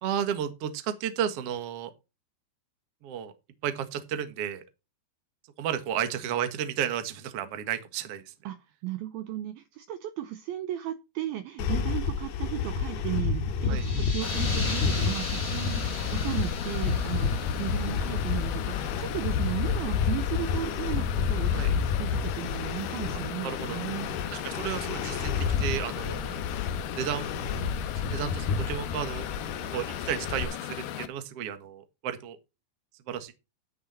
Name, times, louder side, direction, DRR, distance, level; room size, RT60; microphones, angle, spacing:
voice 1, 0.0-1.9 3.0-3.3 3.6-4.6 5.6-8.3 13.7-13.8 21.5-21.7 23.4-23.8 24.3-26.4 27.0-27.3 27.9-29.3 29.6-32.4 33.1-33.3, right 9 dB, 60° right, 9 dB, 1.6 m, -33 dB
voice 2, 8.4-24.1, right 13 dB, 80° right, 10 dB, 2.3 m, -35 dB
sound 1, 11.6-30.4, left 6 dB, 65° left, 3.2 m, -30 dB
sound 2, 13.6-19.0, left 1 dB, 15° left, 3.5 m, -39 dB
sound 3, 14.2-31.1, left 10 dB, 85° left, 1.9 m, -37 dB
13.0 x 6.9 x 4.3 m, 0.27 s
omnidirectional pair, 5.2 m